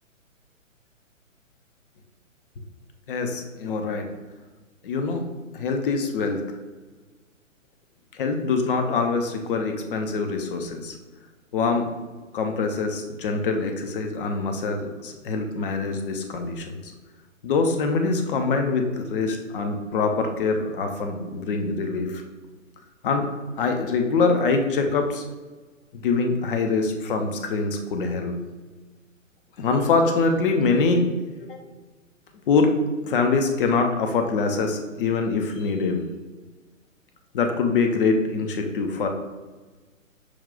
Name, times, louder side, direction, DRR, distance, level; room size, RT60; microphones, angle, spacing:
voice 1, 3.1-4.1 4.8-5.3 5.5-6.4 8.2-11.0 11.5-11.9 12.3-16.9 17.4-22.2 23.0-23.3 23.6-25.2 25.9-28.4 29.6-31.1 31.5-31.6 32.5-32.8 33.0-36.0 37.3-39.1, left 4 dB, 40° left, 4 dB, 0.6 m, -24 dB
6.2 x 2.3 x 3.7 m, 1.3 s
figure-of-eight pair, 130°, 40 cm